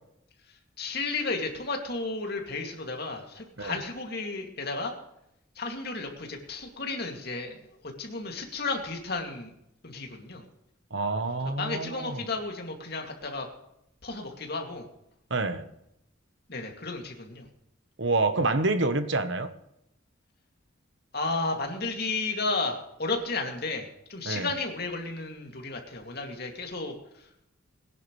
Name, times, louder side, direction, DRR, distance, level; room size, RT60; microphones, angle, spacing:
voice 1, 0.8-4.9 5.6-9.5 9.8-10.4 11.6-13.5 14.0-14.9 16.5-17.5 21.1-27.3, left 3 dB, 50° left, 2 dB, 2.5 m, -33 dB
voice 2, 10.9-12.2 15.3-15.6 18.0-19.5 24.2-24.5, right 3 dB, 60° right, 10 dB, 1.1 m, -27 dB
21.0 x 10.5 x 3.2 m, 0.82 s
head